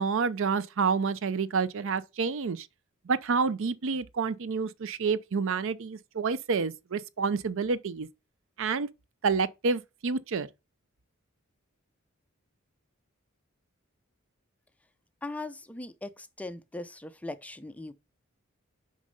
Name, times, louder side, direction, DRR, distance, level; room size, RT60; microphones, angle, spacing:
voice 1, 0.0-2.7 3.1-8.1 8.6-8.9 9.2-10.5, right 5 dB, 65° right, 0.5 m, -28 dB
voice 2, 15.2-17.9, left 2 dB, 5° left, 0.5 m, -39 dB
6.3 x 5.3 x 5.3 m
head